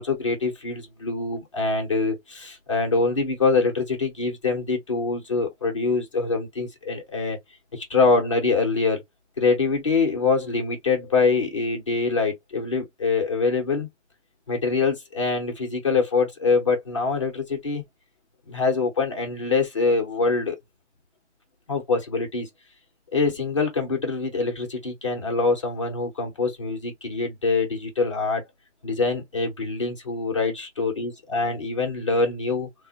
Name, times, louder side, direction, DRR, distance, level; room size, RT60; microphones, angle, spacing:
voice 1, 0.0-7.4 7.7-9.0 9.4-13.9 14.5-17.8 18.5-20.6 21.7-22.5 23.1-28.4 28.8-32.7, left 4 dB, 25° left, 0.8 m, -24 dB
3.3 x 2.1 x 2.8 m
hypercardioid pair, 175°, 36 cm